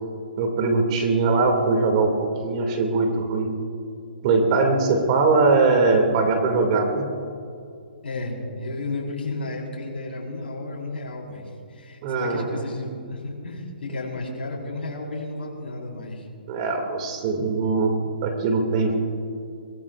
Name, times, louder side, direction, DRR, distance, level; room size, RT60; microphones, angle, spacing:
voice 1, 0.4-3.5 4.2-7.1 12.0-12.7 16.5-18.9, right 3 dB, 35° right, 4 dB, 2.5 m, -21 dB
voice 2, 8.0-16.3, left 2 dB, 85° left, -3 dB, 4.6 m, -33 dB
24.0 x 18.5 x 2.5 m, 2.5 s
hypercardioid pair, 155°, 6 cm